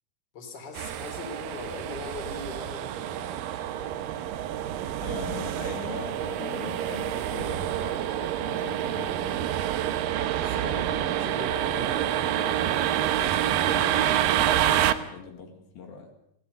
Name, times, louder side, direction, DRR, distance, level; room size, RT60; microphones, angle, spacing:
voice 1, 0.3-4.0 10.2-10.7 11.1-13.6, left 4 dB, 25° left, 4 dB, 3.8 m, -42 dB
sound 1, 0.8-14.9, right 11 dB, 70° right, 2.5 m, -27 dB
voice 2, 5.0-9.4 10.5-11.2 13.6-16.1, left 4 dB, 70° left, 3 dB, 3.9 m, -41 dB
24.0 x 17.0 x 6.7 m, 0.79 s
omnidirectional pair, 4.4 m